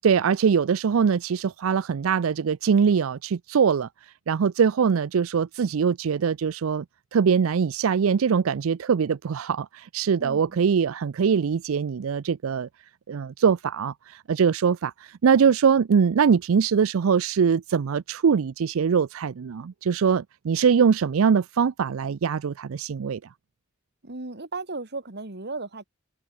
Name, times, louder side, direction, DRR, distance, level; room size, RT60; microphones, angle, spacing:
voice 1, 0.0-6.8 7.1-12.7 13.1-23.2, right 6 dB, 80° right, 0.4 m, -22 dB
voice 2, 10.2-10.6 24.0-25.9, right 3 dB, 55° right, 2.3 m, -35 dB
head